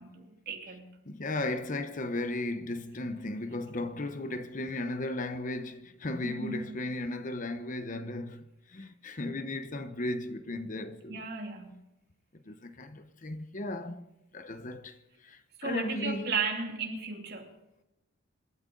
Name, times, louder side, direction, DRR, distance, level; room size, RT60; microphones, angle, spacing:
voice 1, 0.0-0.9 6.2-6.7 11.1-11.7 15.6-17.5, right 4 dB, 50° right, 2.7 m, -35 dB
voice 2, 1.0-11.3 12.3-14.1 14.3-16.4, left 2 dB, 40° left, 0.9 m, -36 dB
26.5 x 13.0 x 3.9 m
head